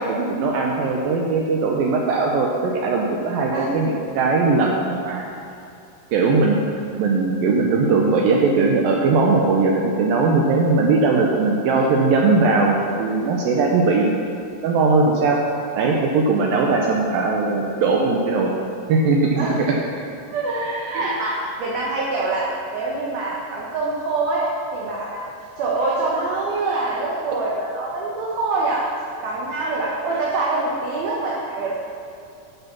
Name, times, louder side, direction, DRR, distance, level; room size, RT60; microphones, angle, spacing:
voice 1, 0.0-5.3 6.1-6.6 7.0-14.2 14.6-15.4 15.7-18.5 18.9-19.7 20.9-21.1, right 3 dB, 85° right, -1 dB, 2.0 m, -19 dB
voice 2, 20.3-25.2 25.6-28.8 29.2-31.8, right 3 dB, 65° right, -5 dB, 2.7 m, -25 dB
12.0 x 7.0 x 5.9 m, 2.5 s
omnidirectional pair, 5.2 m